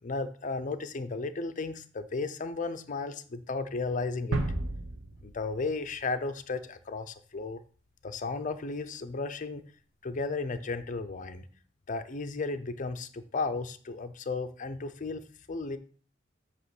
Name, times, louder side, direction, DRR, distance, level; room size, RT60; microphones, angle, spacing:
voice 1, 0.0-4.4 5.2-7.6 8.0-9.6 10.0-11.5 11.9-15.8, left 3 dB, 40° left, 10 dB, 0.5 m, -34 dB
sound 1, 4.3-6.2, right 2 dB, 75° right, 0.9 m, -33 dB
8.1 x 3.0 x 6.0 m, 0.42 s
head